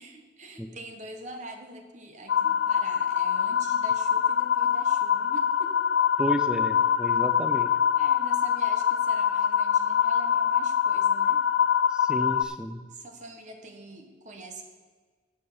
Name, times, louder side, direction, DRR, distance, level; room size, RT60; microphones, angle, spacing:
voice 1, 0.0-5.8 8.0-11.4 12.9-14.6, right 1 dB, 40° right, 4 dB, 1.0 m, -44 dB
sound 1, 2.3-12.4, left 8 dB, 65° left, 0.5 m, -24 dB
voice 2, 6.2-7.7 11.9-12.8, equal, 5° right, 8 dB, 0.5 m, -32 dB
9.9 x 7.4 x 6.8 m, 1.5 s
head